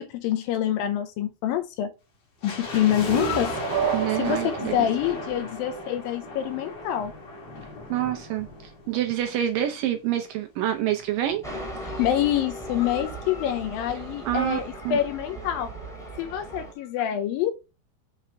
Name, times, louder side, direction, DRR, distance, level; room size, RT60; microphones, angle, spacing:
voice 1, 0.0-1.9 2.4-7.1 11.8-15.7 16.1-17.5, left 11 dB, 80° left, 2.3 m, -26 dB
sound 1, 2.4-9.7 9.9-10.0 10.7-12.5 12.8-12.9 13.1-13.4 13.9-14.0, left 2 dB, 50° left, 3.1 m, -37 dB
sound 2, 2.7-6.3, right 8 dB, 60° right, 1.8 m, -31 dB
voice 2, 3.9-4.8 7.9-11.4 14.3-14.6 14.9-15.0, right 12 dB, 80° right, 2.1 m, -27 dB
sound 3, 11.4-16.7, right 1 dB, ahead, 1.7 m, -38 dB
6.8 x 4.6 x 4.4 m
omnidirectional pair, 4.5 m